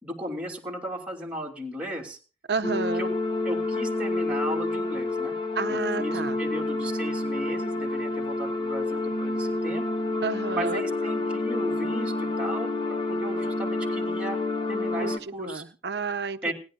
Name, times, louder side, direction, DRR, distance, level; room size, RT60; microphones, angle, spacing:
voice 1, 0.0-2.2 3.0-3.1 3.4-5.4 5.7-9.9 10.5-14.4 14.7-15.6 16.4-16.5, equal, 5° right, 2.9 m, -36 dB
voice 2, 2.5-3.0 5.5-6.4 10.2-10.8 15.0-16.5, right 4 dB, 65° right, 0.8 m, -31 dB
sound 1, 2.6-15.2, left 2 dB, 30° left, 1.1 m, -28 dB
29.5 x 10.5 x 2.5 m
head